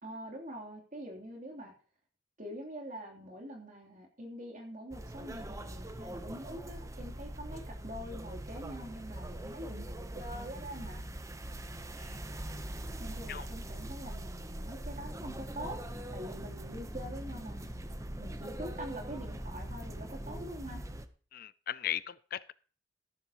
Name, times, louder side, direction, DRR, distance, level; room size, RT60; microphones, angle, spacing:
voice 1, 0.0-1.7 2.4-11.0 13.0-15.8 16.1-17.7 18.2-20.8, equal, 45° right, 0 dB, 3.1 m, -44 dB
sound 1, 4.9-21.1, right 1 dB, 15° right, 0.7 m, -42 dB
sound 2, 15.0-20.4, left 1 dB, 15° left, 0.8 m, -48 dB
voice 2, 21.3-22.5, left 11 dB, 55° left, 18 dB, 0.4 m, -38 dB
13.5 x 11.5 x 2.9 m, 0.42 s
head